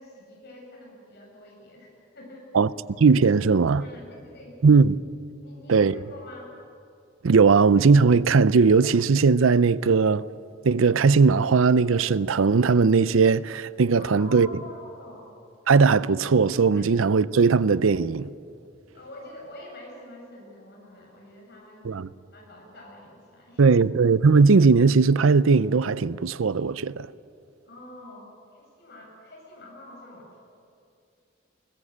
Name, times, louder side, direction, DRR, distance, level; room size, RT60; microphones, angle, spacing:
voice 1, 0.0-2.5 3.8-4.6 5.4-6.5 13.9-15.2 16.7-16.8 18.9-23.8 27.7-30.4, left 1 dB, 55° left, 6.8 m, -46 dB
voice 2, 3.0-3.9 4.6-4.9 5.7-5.9 7.2-10.2 10.6-14.5 15.7-18.3 21.8-22.1 23.6-27.1, right 4 dB, 85° right, 0.5 m, -19 dB
21.0 x 20.0 x 8.6 m
head